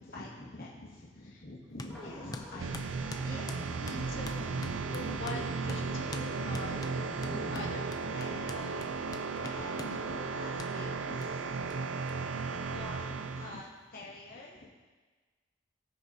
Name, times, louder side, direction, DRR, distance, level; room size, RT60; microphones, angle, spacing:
voice 1, 0.1-2.9 3.2-8.4 9.0-9.1 9.3-9.4 9.8-10.2 10.6-11.2 11.6-12.6 13.1-13.2 13.5-13.6, left 2 dB, 75° left, -3 dB, 1.9 m, -45 dB
sound 1, 1.8-2.0 2.3-5.4 5.7-5.8 6.1-6.3 6.5-10.0 10.6-10.7 11.2-11.3 11.7-11.8 12.1-12.2 12.4-13.1, left 2 dB, 20° left, 0.5 m, -45 dB
sound 2, 1.9-9.3, left 1 dB, ahead, 1.5 m, -48 dB
voice 2, 2.0-2.9 3.2-4.1 7.5-11.6 12.0-14.7, left 2 dB, 50° left, -3 dB, 1.0 m, -50 dB
sound 3, 2.6-13.6, right 4 dB, 85° right, 0.5 m, -35 dB
19.0 x 6.5 x 2.8 m, 1.4 s
head